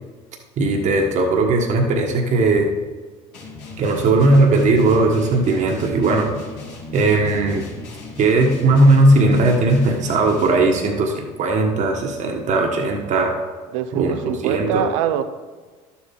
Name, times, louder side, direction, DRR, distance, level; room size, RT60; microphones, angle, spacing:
voice 1, 0.6-2.7 3.8-6.3 6.9-7.6 8.2-13.4 13.9-14.1 14.4-14.8, right 2 dB, 50° right, 2 dB, 1.4 m, -17 dB
sound 1, 3.3-10.8, left 3 dB, 70° left, 3.0 m, -36 dB
voice 2, 13.7-15.2, right 10 dB, 80° right, 11 dB, 0.6 m, -23 dB
11.5 x 7.2 x 3.8 m, 1.4 s
hypercardioid pair, 80°, 16 cm